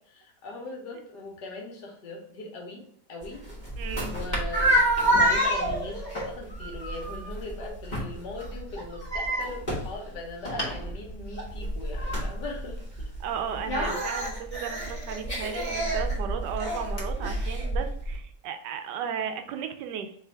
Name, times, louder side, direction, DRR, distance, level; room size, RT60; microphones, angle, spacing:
voice 1, 0.1-2.8 3.1-3.4 4.0-12.8 13.8-14.0, left 2 dB, 75° left, 1 dB, 1.7 m, -39 dB
sound 1, 3.2-18.2, right 1 dB, 30° left, 1.2 m, -29 dB
voice 2, 3.8-4.2 13.2-20.1, right 7 dB, 80° right, 7 dB, 1.2 m, -35 dB
3.4 x 3.3 x 4.5 m, 0.65 s
omnidirectional pair, 1.8 m